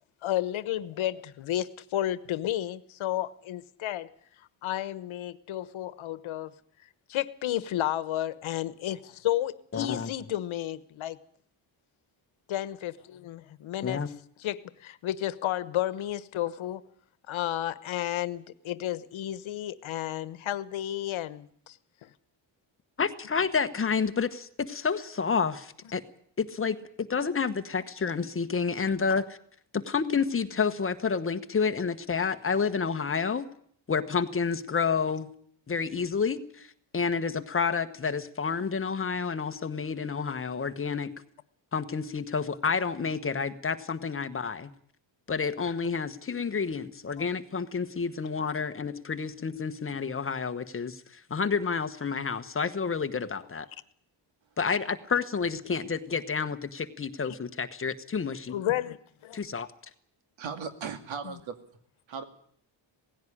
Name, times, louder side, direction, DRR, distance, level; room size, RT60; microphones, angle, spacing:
voice 1, 0.2-4.1 4.6-6.5 7.1-11.2 12.5-14.0 14.4-16.8 17.3-21.8 22.0-22.1 58.5-59.0 59.2-59.4 61.2-61.4, left 13 dB, 85° left, 1.2 m, -32 dB
voice 2, 9.7-10.1 13.8-14.1 23.0-26.0 26.4-29.4 29.7-33.5 33.9-35.3 35.7-36.7 36.9-41.1 41.7-44.7 45.3-53.7 54.6-58.6 59.3-59.7, left 5 dB, 30° left, 1.2 m, -29 dB
voice 3, 60.4-61.5 62.1-62.2, right 6 dB, 75° right, 2.5 m, -37 dB
18.0 x 16.0 x 9.9 m
wide cardioid pair, 150°, 46 cm